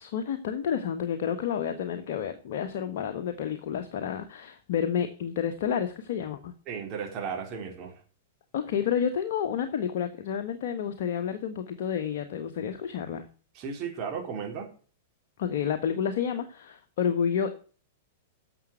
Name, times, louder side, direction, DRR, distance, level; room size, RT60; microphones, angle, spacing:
voice 1, 0.0-6.5 8.5-13.2 15.4-17.6, left 8 dB, 50° left, 7 dB, 1.3 m, -30 dB
voice 2, 6.7-8.0 13.5-14.7, right 6 dB, 35° right, 2 dB, 3.8 m, -35 dB
11.0 x 7.2 x 7.8 m, 0.40 s
figure-of-eight pair, 100°, 0 cm